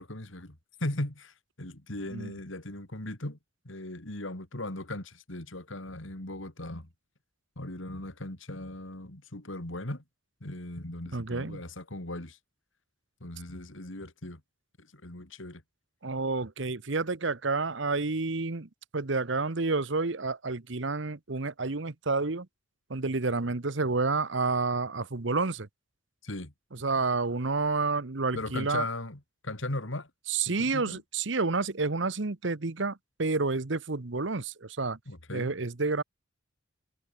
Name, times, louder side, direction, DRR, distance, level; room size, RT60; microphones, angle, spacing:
voice 1, 0.0-3.4 3.6-6.9 7.6-10.0 10.4-12.4 13.2-14.4 14.8-15.6 26.2-26.5 28.3-30.1 30.4-31.0 35.1-35.5, left 1 dB, 75° left, 3.2 m, -38 dB
voice 2, 11.1-11.6 16.0-22.5 22.9-25.7 26.7-28.9 30.3-35.0 35.3-36.0, right 3 dB, 65° right, 1.1 m, -29 dB
head